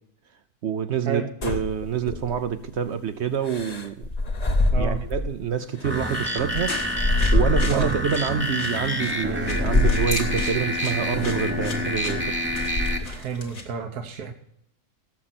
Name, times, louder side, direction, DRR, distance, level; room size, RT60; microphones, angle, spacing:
voice 1, 0.6-4.1 4.7-6.9 7.3-12.4, right 8 dB, 60° right, 0.8 m, -27 dB
sound 1, 1.4-2.6 3.4-5.4 5.8-8.1 8.7-8.8 9.4-10.6 11.1-11.5 11.9-13.2, left 2 dB, 30° left, 1.0 m, -25 dB
voice 2, 4.7-5.0 7.7-7.9 13.0-14.3, right 6 dB, 80° right, 1.6 m, -31 dB
sound 2, 5.8-13.0, equal, 10° right, 0.9 m, -28 dB
sound 3, 6.4-13.6, left 3 dB, 60° left, 2.3 m, -37 dB
17.5 x 7.4 x 4.2 m
omnidirectional pair, 1.6 m